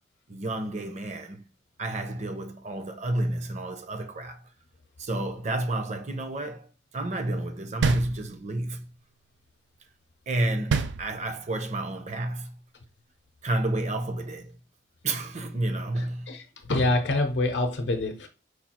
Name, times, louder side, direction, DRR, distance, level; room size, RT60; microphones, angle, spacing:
voice 1, 0.3-1.4 1.8-4.4 5.0-6.7 6.9-8.9 10.3-12.6 13.4-14.5 15.0-16.4, right 1 dB, 40° right, 0.6 m, -30 dB
sound 1, 7.8-8.7 10.7-11.6, right 5 dB, 80° right, 0.4 m, -28 dB
voice 2, 16.3-18.3, left 2 dB, 80° left, 0.6 m, -26 dB
4.9 x 2.3 x 4.3 m
head